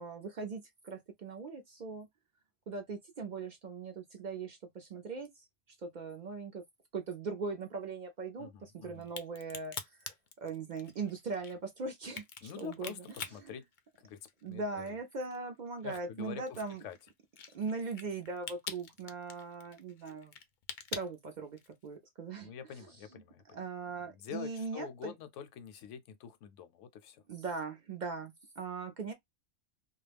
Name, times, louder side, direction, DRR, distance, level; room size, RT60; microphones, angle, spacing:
voice 1, 0.0-2.1 2.7-5.5 5.8-6.6 6.9-10.0 10.4-13.1 13.4-13.6 14.4-16.8 17.5-20.3 20.9-22.5 23.1-23.2 23.5-25.1 27.3-29.1, right 4 dB, 60° right, 0.4 m, -40 dB
voice 2, 8.4-9.1 12.4-13.6 14.0-15.0 15.8-17.0 22.4-23.6 24.1-27.2, left 8 dB, 80° left, 0.9 m, -46 dB
Crack, 9.0-14.5 14.9-21.9, left 6 dB, 60° left, 0.5 m, -45 dB
2.3 x 2.0 x 3.3 m
omnidirectional pair, 1.3 m